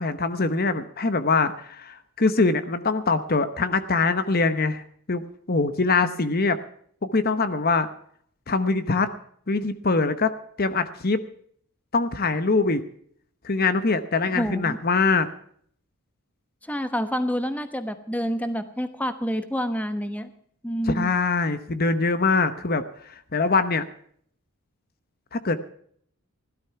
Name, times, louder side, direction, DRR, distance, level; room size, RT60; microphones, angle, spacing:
voice 1, 0.0-4.8 5.1-5.2 5.5-6.6 7.0-7.9 8.5-9.1 9.5-10.3 10.6-11.2 11.9-12.8 13.4-15.3 20.9-23.8 25.3-25.6, left 3 dB, 45° left, 11 dB, 0.9 m, -23 dB
voice 2, 14.3-14.8 16.7-20.3 20.6-21.1, equal, 5° left, 10 dB, 1.0 m, -28 dB
16.5 x 12.5 x 5.8 m, 0.62 s
head